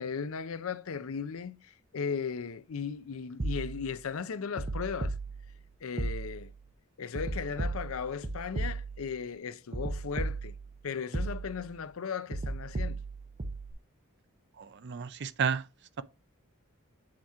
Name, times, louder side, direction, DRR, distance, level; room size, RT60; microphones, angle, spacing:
voice 1, 0.0-5.1 5.8-6.5 7.0-10.5 10.8-13.0, left 6 dB, 70° left, 0.5 m, -36 dB
sound 1, 3.4-4.0 4.6-5.6 6.0-6.6 7.1-9.2 9.7-10.8 11.1-11.8 12.3-13.7, right 2 dB, 30° right, 0.8 m, -35 dB
voice 2, 14.6-15.6, right 6 dB, 50° right, 0.5 m, -31 dB
7.5 x 2.9 x 4.7 m
head